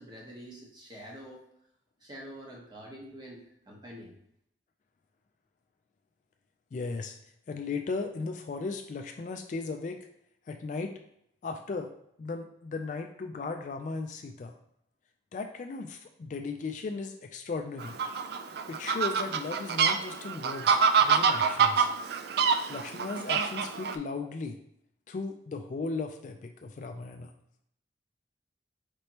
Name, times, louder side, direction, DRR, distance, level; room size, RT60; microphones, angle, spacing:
voice 1, 0.0-1.4 2.0-4.1, equal, 25° right, -3 dB, 1.0 m, -46 dB
voice 2, 6.7-7.2 7.5-10.0 10.5-10.9 11.4-11.9 12.2-14.5 15.3-18.0 18.7-21.9 22.7-24.6 25.1-27.3, left 4 dB, 40° left, 6 dB, 0.3 m, -36 dB
Fowl, 17.8-23.9, right 6 dB, 55° right, 0.3 m, -26 dB
5.2 x 3.3 x 2.9 m, 0.76 s
head